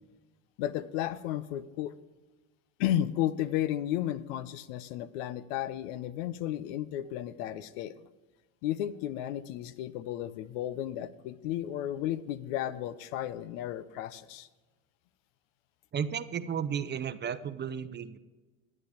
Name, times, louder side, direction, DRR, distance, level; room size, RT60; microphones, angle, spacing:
voice 1, 0.6-1.9 2.8-7.9 8.6-14.5, left 12 dB, 80° left, 16 dB, 0.7 m, -33 dB
voice 2, 15.9-18.2, right 7 dB, 30° right, 13 dB, 0.6 m, -33 dB
12.0 x 8.6 x 5.0 m, 1.2 s
supercardioid pair, 105°, 38 cm